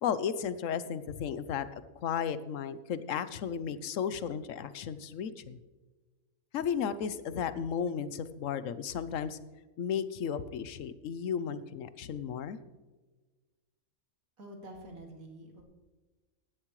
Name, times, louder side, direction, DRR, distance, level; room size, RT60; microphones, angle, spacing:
voice 1, 0.0-5.6 6.5-9.4 9.8-12.6, left 7 dB, 65° left, 14 dB, 1.0 m, -34 dB
voice 2, 14.4-15.6, right 1 dB, 75° right, 1 dB, 2.7 m, -47 dB
15.5 x 11.0 x 3.1 m, 1.2 s
omnidirectional pair, 1.5 m